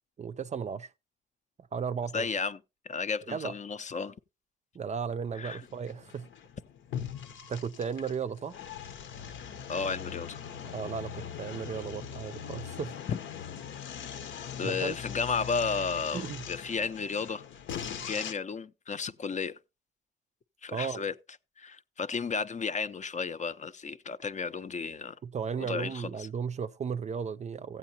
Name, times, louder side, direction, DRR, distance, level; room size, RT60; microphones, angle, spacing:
voice 1, 0.2-0.9 1.7-2.3 3.3-3.5 4.8-6.3 7.5-8.6 10.7-12.9 14.6-15.0 16.1-16.4 20.7-21.0 25.2-27.8, right 6 dB, 35° right, 0.4 m, -35 dB
voice 2, 2.1-2.6 2.8-4.1 5.3-5.6 9.7-10.4 13.1-13.2 14.6-17.4 18.1-19.6 20.6-21.1 21.6-25.2 25.6-26.3, left 5 dB, 35° left, 0.5 m, -33 dB
sound 1, 5.3-18.3, left 8 dB, 70° left, 0.9 m, -41 dB
15.0 x 8.2 x 2.8 m
cardioid pair, 90°, 20 cm